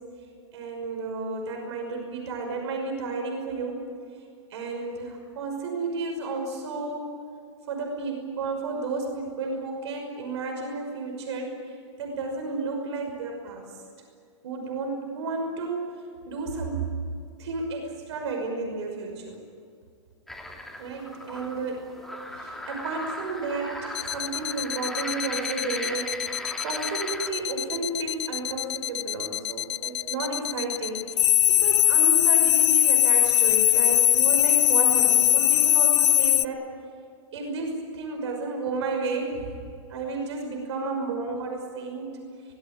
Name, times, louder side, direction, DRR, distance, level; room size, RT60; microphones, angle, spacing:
voice 1, 0.5-3.8 4.5-7.2 7.7-13.8 14.4-16.0 16.3-16.9 17.4-19.4 20.8-21.8 22.3-36.7 37.3-39.6 39.9-42.1, right 3 dB, 65° right, 2 dB, 5.8 m, -32 dB
sound 1, 20.3-27.3, left 1 dB, ahead, 2.2 m, -38 dB
sound 2, 23.9-36.4, left 13 dB, 65° left, 0.6 m, -21 dB
25.0 x 19.5 x 9.0 m, 2.4 s
hypercardioid pair, 160°, 16 cm